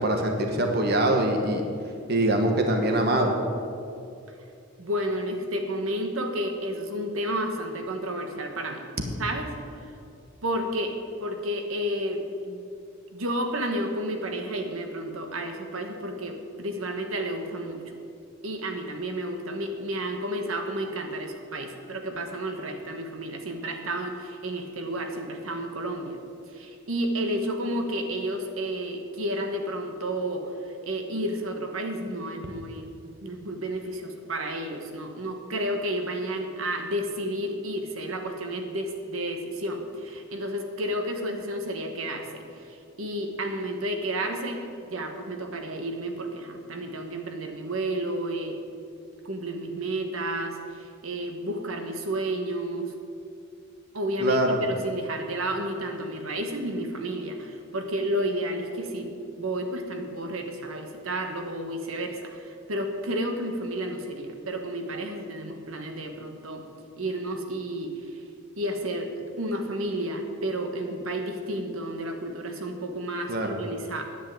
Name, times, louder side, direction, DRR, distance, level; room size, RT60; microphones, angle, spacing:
voice 1, 0.0-1.6 2.1-3.3 54.2-54.6 73.3-73.6, right 1 dB, 50° right, 3 dB, 1.3 m, -23 dB
voice 2, 4.8-8.8 9.2-9.5 9.8-9.9 10.4-10.9 11.2-12.6 13.1-17.8 18.4-26.2 26.5-32.9 33.2-48.6 49.2-52.9 53.9-59.1 59.4-66.6 67.0-68.2 68.6-74.0, right 1 dB, 85° right, 4 dB, 1.4 m, -31 dB
10.0 x 8.6 x 9.2 m, 2.5 s
head